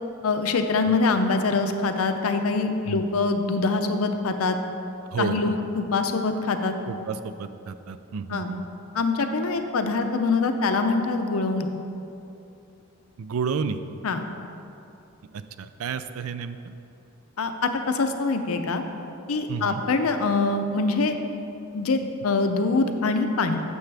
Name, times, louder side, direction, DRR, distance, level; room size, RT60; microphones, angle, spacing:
voice 1, 0.2-4.6 5.2-6.7 8.3-8.5 8.9-11.7 14.0-14.3 17.4-18.8 19.3-21.1 21.7-23.6, left 3 dB, 85° left, 7 dB, 0.6 m, -24 dB
voice 2, 5.1-5.6 6.9-8.7 13.2-13.8 15.3-16.6 19.5-19.8, right 5 dB, 85° right, 11 dB, 0.4 m, -31 dB
9.5 x 7.0 x 3.4 m, 2.8 s
head